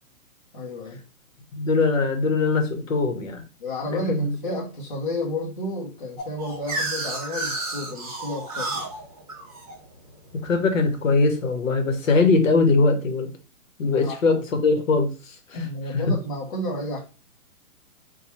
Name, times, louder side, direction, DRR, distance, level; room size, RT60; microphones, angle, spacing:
voice 1, 0.5-1.0 3.6-8.9 13.8-14.4 15.5-17.0, left 1 dB, 35° left, 0.6 m, -31 dB
voice 2, 1.5-3.4 3.9-4.4 10.4-13.3 13.8-16.0, left 3 dB, 60° left, 0.9 m, -21 dB
sound 1, 6.2-11.0, right 2 dB, 25° right, 0.6 m, -32 dB
2.9 x 2.2 x 4.2 m
hypercardioid pair, 180°, 43 cm